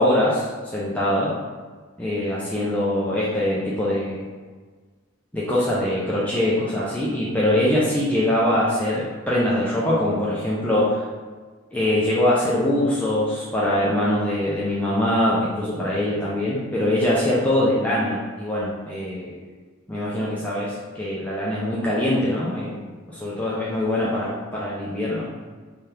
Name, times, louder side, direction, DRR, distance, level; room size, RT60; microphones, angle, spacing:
voice 1, 0.0-1.4 2.0-4.3 5.3-11.0 11.7-19.4 19.9-22.8 23.1-25.2, left 1 dB, 5° left, -7 dB, 0.4 m, -23 dB
2.7 x 2.3 x 3.3 m, 1.4 s
head